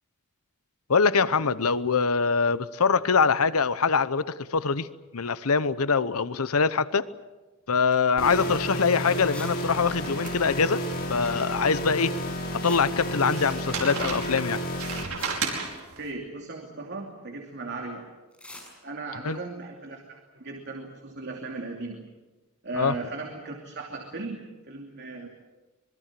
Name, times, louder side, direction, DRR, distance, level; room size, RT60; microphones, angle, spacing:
voice 1, 0.9-4.2 4.5-4.9 5.1-7.1 7.7-10.8 11.1-12.1 12.6-14.6 19.2-19.4 22.7-22.9, left 5 dB, 85° left, 0.9 m, -23 dB
sound 1, 7.9-8.2 8.6-8.7 9.3-9.6 9.9-10.0 10.2-10.3 12.5-13.3 14.7-14.8 15.1-16.4 18.3-18.8, left 1 dB, 5° left, 6.7 m, -45 dB
sound 2, 8.2-15.0, equal, 45° left, 5.8 m, -31 dB
sound 3, 9.8-11.9 12.3-12.4 13.2-16.0, right 5 dB, 75° right, 5.1 m, -35 dB
voice 2, 16.0-18.1 18.8-22.1 22.6-25.3, right 3 dB, 55° right, 2.8 m, -37 dB
25.5 x 22.5 x 7.6 m
head